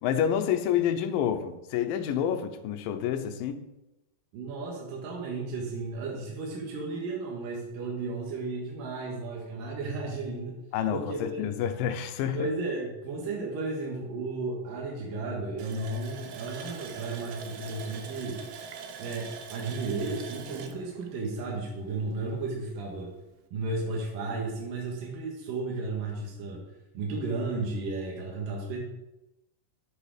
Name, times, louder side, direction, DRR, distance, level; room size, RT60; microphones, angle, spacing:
voice 1, 0.0-3.6 10.7-12.5, left 9 dB, 80° left, 8 dB, 2.4 m, -28 dB
voice 2, 4.3-10.6 10.9-11.5 12.2-18.4 19.0-23.1 23.5-26.6 26.9-28.8, right 3 dB, 65° right, -2 dB, 3.1 m, -34 dB
Water tap faucet, 15.6-22.1 22.4-22.5 23.0-23.1, right 6 dB, 90° right, 2.8 m, -43 dB
9.6 x 7.8 x 4.9 m, 0.94 s
omnidirectional pair, 4.3 m